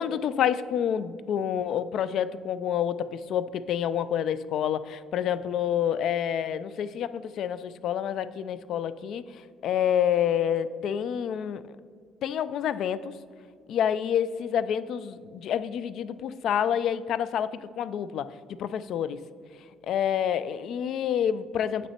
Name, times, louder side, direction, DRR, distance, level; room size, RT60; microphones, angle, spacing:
voice 1, 0.0-9.2 9.6-11.6 12.2-13.2 13.7-18.3 18.6-19.2 19.9-21.9, left 9 dB, 60° left, 15 dB, 0.3 m, -28 dB
8.0 x 6.0 x 4.2 m, 2.1 s
cardioid pair, 145°, 0 cm